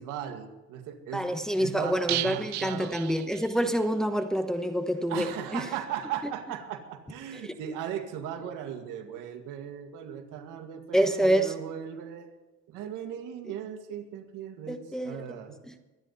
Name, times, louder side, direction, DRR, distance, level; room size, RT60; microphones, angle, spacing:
voice 1, 0.0-1.3 1.6-3.0 5.1-12.3 12.7-15.6, right 9 dB, 90° right, 2.1 m, -37 dB
voice 2, 1.1-5.6 7.4-7.5 10.9-11.5 14.7-15.4 15.7-15.8, right 1 dB, ahead, 1.0 m, -27 dB
sound 1, 2.1-3.9 4.1-4.2 4.6-4.7, right 16 dB, 60° right, 0.6 m, -35 dB
23.0 x 10.0 x 4.1 m
cardioid pair, 140°, 31 cm